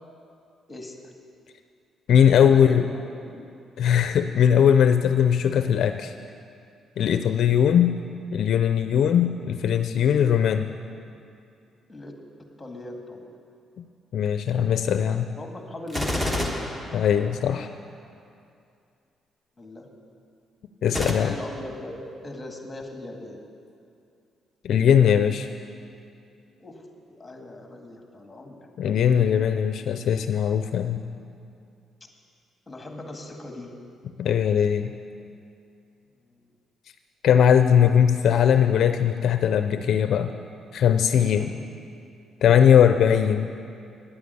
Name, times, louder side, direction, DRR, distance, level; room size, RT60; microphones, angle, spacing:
voice 1, 0.7-1.1 2.4-3.5 11.9-13.3 15.4-16.6 19.6-19.9 21.1-23.4 26.6-28.7 32.0-32.1 32.7-33.8 36.2-36.4 41.3-41.9, left 1 dB, 15° left, 2 dB, 1.9 m, -39 dB
voice 2, 2.1-2.9 3.8-6.1 7.0-8.0 8.3-10.7 13.8-13.9 14.1-15.3 16.9-17.7 20.8-21.3 24.6-25.5 28.8-31.0 34.2-34.9 37.2-40.3 40.7-41.5 42.4-43.5, left 8 dB, 70° left, 8 dB, 0.4 m, -20 dB
Gunshot gunfire, 15.9-17.7 20.9-21.1, left 1 dB, 10° right, 1.4 m, -28 dB
9.7 x 8.5 x 8.1 m, 2.5 s
cardioid pair, 90°, 0 cm